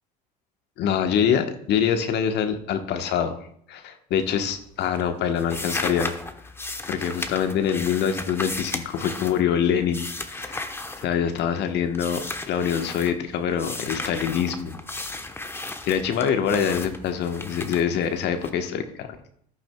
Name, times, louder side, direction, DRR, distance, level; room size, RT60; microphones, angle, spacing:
voice 1, 0.8-3.4 3.7-6.1 6.9-10.1 10.3-10.6 11.0-14.8 15.8-19.1, left 8 dB, 55° left, 7 dB, 1.2 m, -25 dB
sound 1, 4.1-4.6 4.8-11.6 11.9-13.1 13.6-18.5, left 2 dB, 10° left, 1.0 m, -35 dB
14.0 x 10.5 x 2.3 m, 0.65 s
hypercardioid pair, 75°, 21 cm